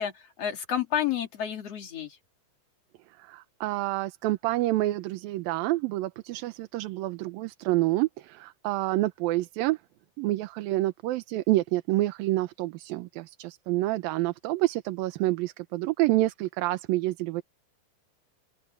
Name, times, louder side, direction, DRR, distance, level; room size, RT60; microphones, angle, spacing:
voice 1, 0.0-2.2, left 9 dB, 45° left, 3.4 m, -30 dB
voice 2, 3.2-9.8 10.2-17.4, right 17 dB, 85° right, 2.6 m, -28 dB
open air
omnidirectional pair, 4.0 m